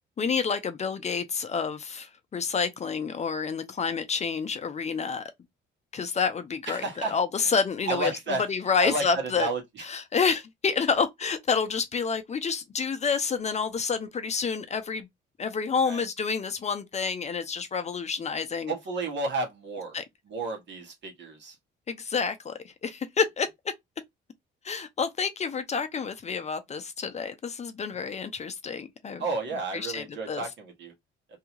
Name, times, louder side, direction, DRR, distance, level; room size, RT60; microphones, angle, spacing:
voice 1, 0.0-5.3 5.9-9.5 9.8-15.1 15.4-18.7 19.9-20.0 21.9-23.5 24.6-29.2 29.7-30.4, left 5 dB, 35° left, 0.5 m, -29 dB
voice 2, 6.7-7.5 7.9-8.5 8.8-9.8 15.9-16.0 18.7-20.0 20.3-21.6 29.2-30.9, right 3 dB, 65° right, 1.2 m, -32 dB
2.7 x 2.3 x 3.0 m
cardioid pair, 90°, 20 cm